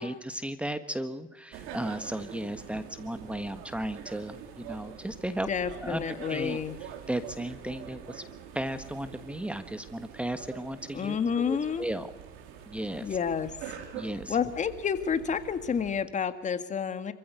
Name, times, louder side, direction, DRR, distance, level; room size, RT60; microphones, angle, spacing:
voice 1, 0.0-5.5 5.8-6.6 7.1-8.2 8.5-12.1 12.7-13.2 13.9-14.4, right 1 dB, 5° right, 11 dB, 1.4 m, -35 dB
sound 1, 1.5-16.0, right 8 dB, 85° right, 4.0 m, -45 dB
voice 2, 5.5-6.8 10.9-11.9 13.0-13.5 14.3-17.1, left 7 dB, 35° left, 11 dB, 2.0 m, -30 dB
26.5 x 15.5 x 8.2 m, 1.1 s
cardioid pair, 110°, 20 cm